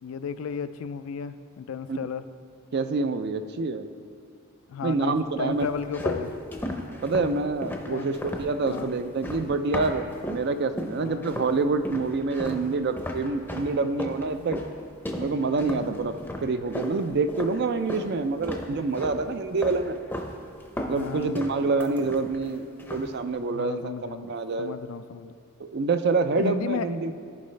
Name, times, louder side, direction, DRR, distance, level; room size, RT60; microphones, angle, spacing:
voice 1, 0.0-2.2 4.7-6.3 7.9-8.1 8.7-8.9 11.0-11.3 15.8-16.0 21.0-21.4 23.5-25.3 26.4-26.9, left 6 dB, 70° left, 12 dB, 0.3 m, -34 dB
voice 2, 2.7-3.9 4.8-5.7 7.0-14.6 15.2-20.0 20.9-22.7 22.9-24.8 25.6-27.1, right 3 dB, 50° right, 10 dB, 0.4 m, -27 dB
sound 1, 5.6-10.5 10.8-11.6 11.9-18.1 18.4-19.2 19.6-20.3 20.6-22.5 22.8-23.2, left 1 dB, 10° left, 0.6 m, -35 dB
14.0 x 5.4 x 3.2 m, 2.3 s
head